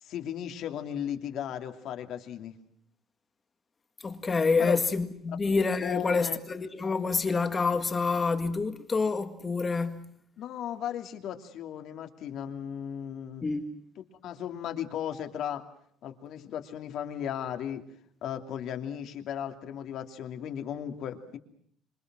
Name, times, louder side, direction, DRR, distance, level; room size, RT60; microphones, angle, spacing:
voice 1, 0.0-2.5 4.6-4.8 5.8-6.4 10.4-13.5 14.1-15.6 16.0-17.8 18.2-21.4, left 9 dB, 55° left, 2.8 m, -36 dB
voice 2, 4.0-10.0 13.4-13.6, left 4 dB, 20° left, 1.9 m, -27 dB
26.5 x 26.5 x 6.2 m
cardioid pair, 165°, 0 cm